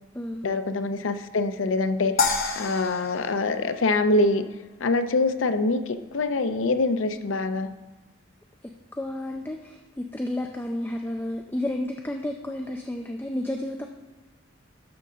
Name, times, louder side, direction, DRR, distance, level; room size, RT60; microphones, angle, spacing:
voice 1, 0.4-2.2 2.6-4.5 4.8-7.8, left 2 dB, 85° left, 9 dB, 0.6 m, -24 dB
sound 1, 2.2-4.6, left 4 dB, 50° left, 1.0 m, -29 dB
voice 2, 8.9-13.9, left 1 dB, 10° left, 2 dB, 0.5 m, -31 dB
11.5 x 3.8 x 6.7 m, 1.2 s
head